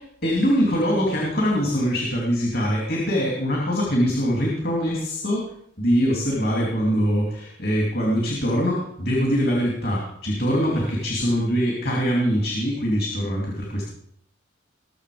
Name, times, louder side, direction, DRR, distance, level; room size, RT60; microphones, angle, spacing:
voice 1, 0.2-5.5 5.8-13.8, equal, 50° left, -2 dB, 3.0 m, -23 dB
20.5 x 7.0 x 5.1 m, 0.71 s
head